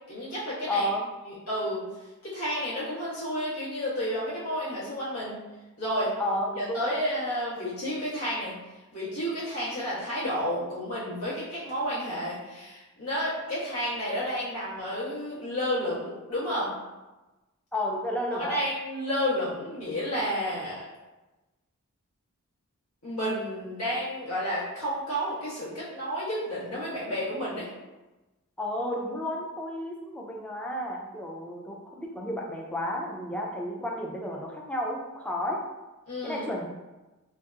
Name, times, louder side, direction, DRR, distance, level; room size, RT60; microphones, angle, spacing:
voice 1, 0.1-0.9 1.2-1.8 2.2-5.4 5.8-6.1 6.5-8.5 8.9-16.7 18.4-20.8 23.0-27.7 36.1-36.4, equal, 90° left, -10 dB, 1.4 m, -31 dB
voice 2, 0.7-1.0 6.2-6.9 17.7-18.6 28.6-35.6 36.2-36.7, left 1 dB, 5° left, -1 dB, 0.3 m, -32 dB
2.8 x 2.7 x 2.3 m, 1.1 s
head